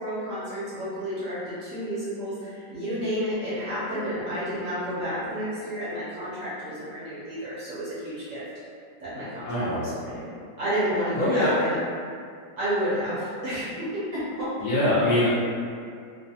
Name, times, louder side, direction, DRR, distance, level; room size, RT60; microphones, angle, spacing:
voice 1, 0.0-8.4 9.0-10.3 10.6-11.8 12.6-14.5, equal, 60° right, -11 dB, 0.9 m, -30 dB
voice 2, 9.5-9.9 11.2-11.5 14.6-15.3, left 1 dB, 70° left, -9 dB, 1.0 m, -23 dB
3.2 x 2.0 x 2.6 m, 2.3 s
omnidirectional pair, 1.9 m